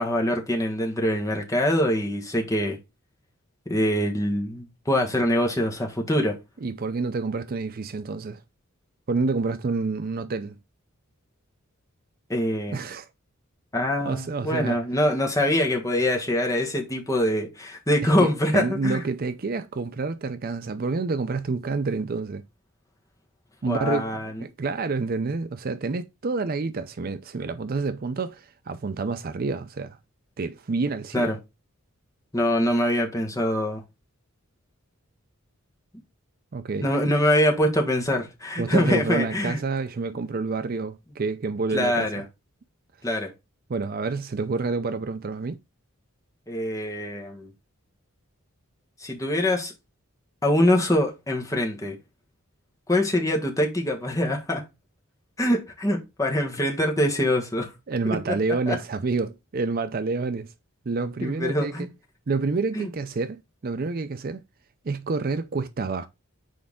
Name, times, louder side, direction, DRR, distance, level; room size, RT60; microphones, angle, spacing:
voice 1, 0.0-2.8 3.7-6.4 12.3-12.8 13.7-19.0 23.7-24.4 31.1-31.3 32.3-33.8 36.8-39.6 41.7-42.2 43.0-43.3 46.5-47.5 49.0-49.7 50.4-52.0 52.9-54.6 55.4-57.7 58.0-58.2 58.7-58.8 61.2-61.9 62.7-62.9, left 1 dB, 15° left, 1.4 m, -24 dB
voice 2, 6.6-8.4 9.1-10.6 12.7-13.1 14.0-14.8 18.0-22.4 23.6-24.1 24.4-30.0 30.4-31.4 36.5-36.9 38.6-42.1 43.7-45.6 57.9-60.5 60.9-61.9 62.3-64.4 64.8-66.1, right 4 dB, 40° right, 0.4 m, -28 dB
6.3 x 4.6 x 3.6 m
head